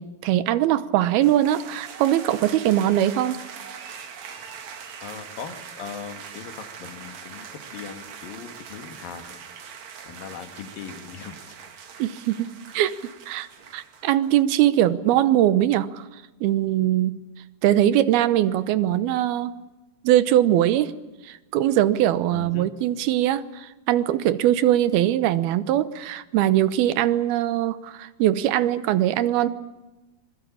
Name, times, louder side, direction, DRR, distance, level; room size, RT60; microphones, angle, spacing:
voice 1, 0.0-3.4 12.0-12.5 12.7-13.5 13.7-16.1 16.4-17.2 17.6-19.6 20.0-20.9 21.2-29.5, right 12 dB, 80° right, 15 dB, 2.9 m, -21 dB
sound 1, 1.2-14.4, right 7 dB, 55° right, 2.8 m, -42 dB
voice 2, 5.0-9.4 10.0-11.4 22.3-22.7, left 7 dB, 70° left, 8 dB, 3.4 m, -39 dB
25.5 x 21.5 x 8.5 m, 1.1 s
omnidirectional pair, 4.4 m